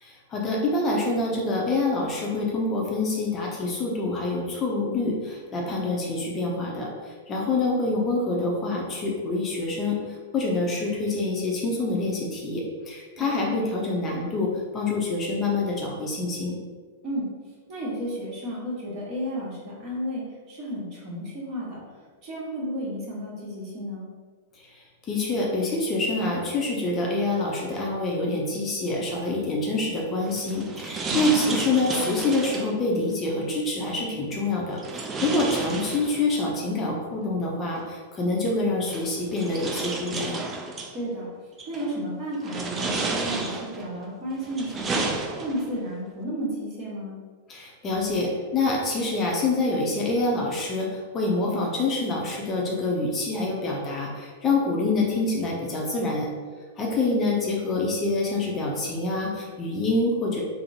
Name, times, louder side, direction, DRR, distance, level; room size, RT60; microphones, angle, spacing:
voice 1, 0.0-6.9 7.3-10.0 10.3-16.6 25.1-40.4 47.5-56.3 56.8-60.4, left 2 dB, 25° left, -2 dB, 0.6 m, -26 dB
voice 2, 13.2-13.6 17.0-17.3 17.7-21.8 22.2-24.1 31.0-31.4 40.9-41.3 41.7-45.0 45.4-47.2 57.0-57.1, equal, 40° right, -6 dB, 1.2 m, -32 dB
sound 1, 30.2-32.8 34.8-36.4 37.8-37.9 38.9-41.0 41.6-42.0 42.4-43.9 44.4-45.8, right 3 dB, 20° right, 0.4 m, -32 dB
3.5 x 2.1 x 2.7 m, 1.5 s
figure-of-eight pair, 100°, 0 cm